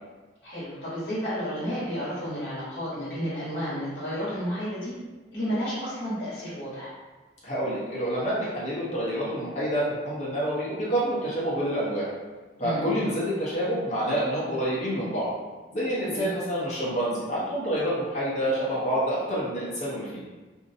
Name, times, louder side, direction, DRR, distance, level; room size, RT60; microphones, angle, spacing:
voice 1, 0.4-4.9 5.3-6.9 12.6-12.8 16.0-16.3, equal, 60° left, -11 dB, 1.1 m, -31 dB
voice 2, 7.4-12.1 12.6-15.3 15.7-20.2, equal, 40° left, -8 dB, 0.8 m, -28 dB
2.6 x 2.2 x 2.6 m, 1.2 s
head